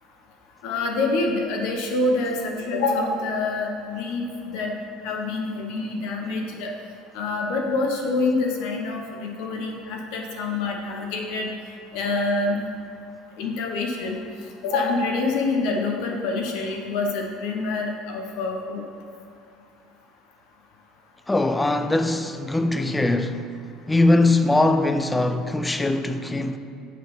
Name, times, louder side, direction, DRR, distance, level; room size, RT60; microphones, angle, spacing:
voice 1, 0.6-4.7 5.0-6.7 7.1-11.5 11.9-12.6 13.4-14.2 14.6-18.8, left 3 dB, 70° left, 0.9 m, -26 dB
voice 2, 21.3-23.5 23.9-26.6, left 2 dB, 10° left, 0.3 m, -21 dB
9.3 x 4.0 x 5.3 m
cardioid pair, 145°, 0 cm